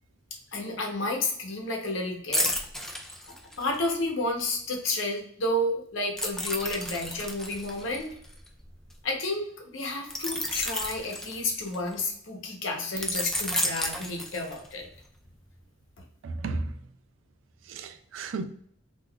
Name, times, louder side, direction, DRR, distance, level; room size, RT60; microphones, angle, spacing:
voice 1, 0.5-2.5 3.3-8.1 9.0-14.9, left 2 dB, 85° left, 0.8 m, -31 dB
sound 1, 2.3-3.9 6.2-8.9 10.1-11.9 13.0-14.8 15.2-15.4, left 1 dB, ahead, 0.3 m, -32 dB
voice 2, 16.2-16.8 17.6-18.4, right 3 dB, 75° right, 0.4 m, -33 dB
2.4 x 2.3 x 3.6 m
head